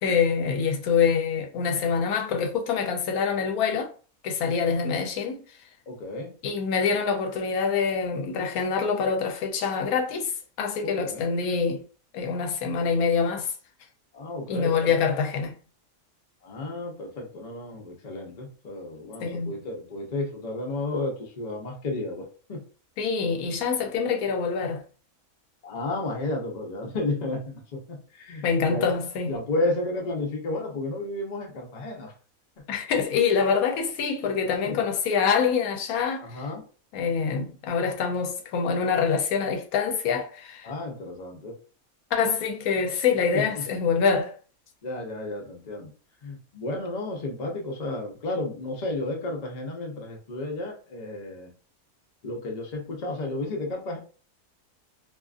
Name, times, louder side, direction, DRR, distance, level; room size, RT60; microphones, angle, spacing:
voice 1, 0.0-3.9 4.2-5.4 6.4-11.8 12.1-13.5 14.5-15.6 19.2-19.6 23.0-24.8 28.4-29.4 32.7-36.4 36.9-40.7 42.1-44.4, left 6 dB, 80° left, 1.0 m, -25 dB
voice 2, 5.9-6.3 10.8-11.3 14.1-15.0 16.4-22.2 22.5-22.6 25.6-28.9 29.3-32.1 34.7-34.8 36.2-36.7 40.6-41.6 43.3-43.6 44.8-45.9 46.2-51.5 52.2-54.0, left 2 dB, 45° left, 0.5 m, -32 dB
2.7 x 2.4 x 2.4 m
omnidirectional pair, 1.5 m